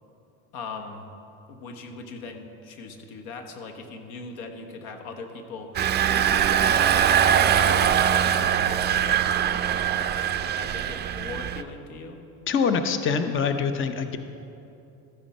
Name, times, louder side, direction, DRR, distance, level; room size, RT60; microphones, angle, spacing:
voice 1, 0.5-1.0 1.5-5.8 6.1-12.2, left 4 dB, 90° left, 5 dB, 1.4 m, -40 dB
Engine, 5.7-11.6, right 9 dB, 25° right, 0.4 m, -22 dB
voice 2, 12.5-14.2, left 6 dB, 30° left, 8 dB, 0.7 m, -24 dB
13.5 x 10.0 x 4.3 m, 2.8 s
supercardioid pair, 100°, 40 cm